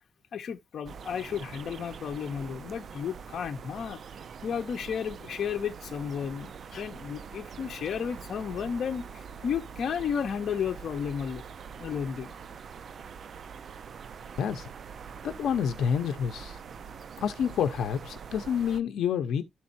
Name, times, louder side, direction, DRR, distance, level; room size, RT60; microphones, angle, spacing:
voice 1, 0.3-4.0 4.4-9.0 9.4-11.4 11.8-12.3, left 7 dB, 60° left, 0.9 m, -33 dB
sound 1, 0.9-18.8, right 6 dB, 50° right, 0.4 m, -44 dB
voice 2, 14.4-14.7 15.2-16.6 17.2-19.4, left 8 dB, 90° left, 0.7 m, -28 dB
12.5 x 4.3 x 2.6 m
wide cardioid pair, 160°, 0 cm